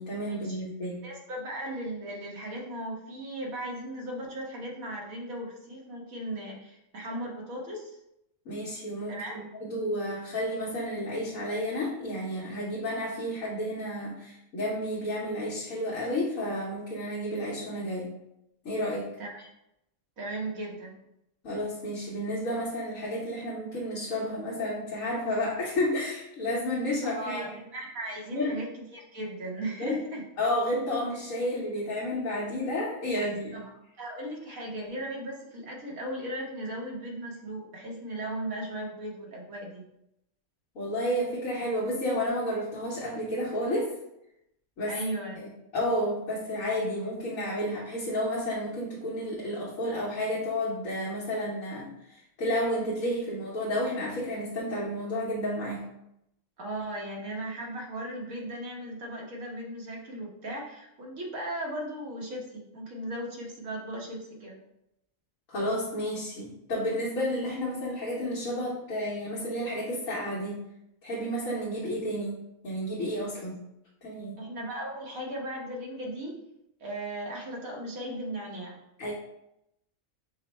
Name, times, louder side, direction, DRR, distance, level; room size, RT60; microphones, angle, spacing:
voice 1, 0.0-1.0 8.4-18.1 18.6-19.1 21.4-27.6 28.3-28.5 29.8-30.0 30.4-33.5 40.7-43.9 44.8-45.0 45.3-55.8 65.5-70.6 71.0-73.5 74.0-74.4 79.0-79.1, left 1 dB, 75° left, -6 dB, 1.4 m, -31 dB
voice 2, 1.0-8.0 9.1-9.4 19.2-19.5 20.2-21.0 27.0-27.5 27.7-30.2 33.2-33.3 33.5-33.7 34.0-39.8 44.9-45.4 56.6-64.6 74.4-76.4 76.8-78.8, right 1 dB, 85° right, -2 dB, 1.5 m, -37 dB
5.6 x 2.1 x 4.2 m, 0.83 s
omnidirectional pair, 1.4 m